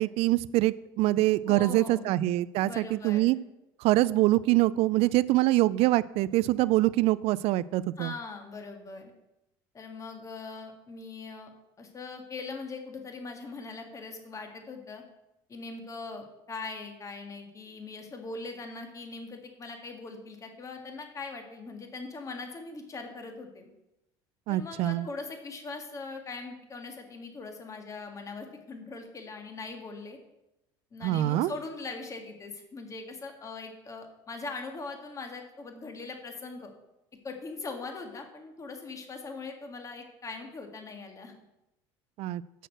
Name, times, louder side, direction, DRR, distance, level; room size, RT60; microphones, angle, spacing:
voice 1, 0.0-3.4 3.8-8.1 24.5-25.1 31.0-31.5 42.2-42.4, right 17 dB, 60° right, 18 dB, 0.4 m, -24 dB
voice 2, 1.5-2.1 2.6-3.4 8.0-9.1 9.7-11.5 11.8-15.0 15.5-23.7 24.5-30.2 30.9-36.7 37.2-41.3, left 3 dB, 30° left, 4 dB, 1.8 m, -41 dB
6.6 x 6.5 x 7.7 m, 0.90 s
supercardioid pair, 100°, 11 cm